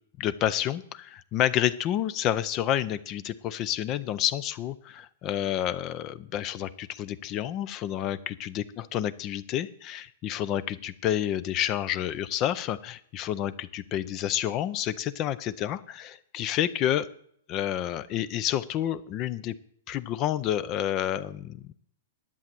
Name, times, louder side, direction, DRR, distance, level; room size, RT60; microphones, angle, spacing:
voice 1, 0.2-17.1 17.5-19.6 19.9-21.7, left 11 dB, 25° left, 16 dB, 0.4 m, -29 dB
11.0 x 8.6 x 7.6 m, 0.65 s
hypercardioid pair, 165°, 0 cm